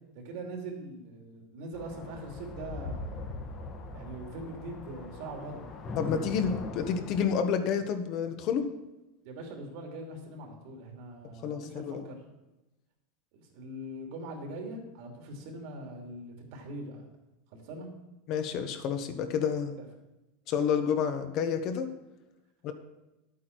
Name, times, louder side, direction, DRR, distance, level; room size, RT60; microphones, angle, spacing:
voice 1, 0.1-3.3 3.9-5.6 9.2-12.2 13.3-17.1 17.5-17.9 19.8-19.9, right 2 dB, 65° right, 2 dB, 2.9 m, -42 dB
sound 1, 1.7-7.2, left 3 dB, 30° left, 1.4 m, -40 dB
voice 2, 6.0-8.7 11.4-12.0 18.3-19.8 20.5-21.9 22.6-22.7, left 7 dB, 45° left, 8 dB, 1.2 m, -29 dB
11.0 x 8.5 x 4.6 m, 0.99 s
supercardioid pair, 140°, 0 cm